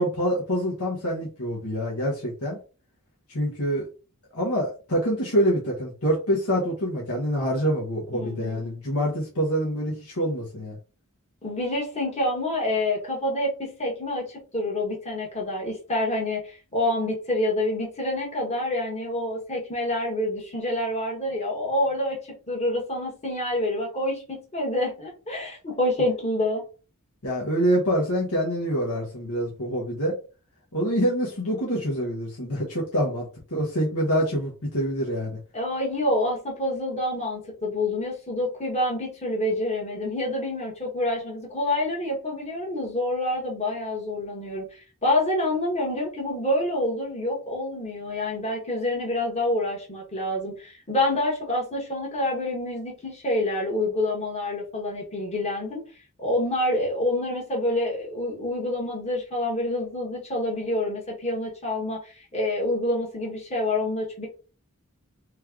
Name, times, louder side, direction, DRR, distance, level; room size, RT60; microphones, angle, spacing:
voice 1, 0.0-2.6 3.3-3.9 4.3-10.8 27.2-30.1 30.7-35.4, equal, 75° left, -4 dB, 1.3 m, -26 dB
voice 2, 8.1-8.7 11.4-26.6 35.5-55.8 56.2-64.3, left 1 dB, 30° left, -2 dB, 1.3 m, -27 dB
3.3 x 3.2 x 3.6 m, 0.35 s
head